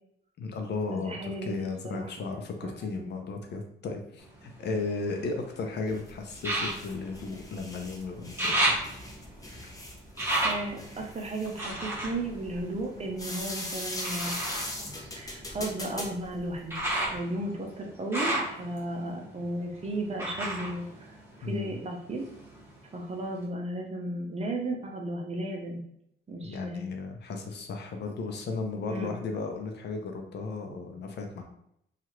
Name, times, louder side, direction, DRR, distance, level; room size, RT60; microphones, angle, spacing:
voice 1, 0.4-8.9 21.4-21.8 26.4-31.4, left 3 dB, 60° left, 3 dB, 0.6 m, -35 dB
voice 2, 0.9-2.1 2.6-2.7 10.4-14.5 15.2-16.8 17.1-20.9 21.4-22.3 22.9-25.8 26.3-26.8 28.9-29.1, right 2 dB, 30° right, 1 dB, 0.6 m, -34 dB
sound 1, 4.2-5.6 6.4-7.9 8.2-13.3 14.0-21.8 22.1-23.0 23.4-23.5, right 1 dB, 10° right, 1.0 m, -33 dB
sound 2, 5.9-17.2, left 1 dB, 15° left, 0.7 m, -40 dB
2.8 x 2.4 x 3.0 m, 0.75 s
cardioid pair, 90°, 20 cm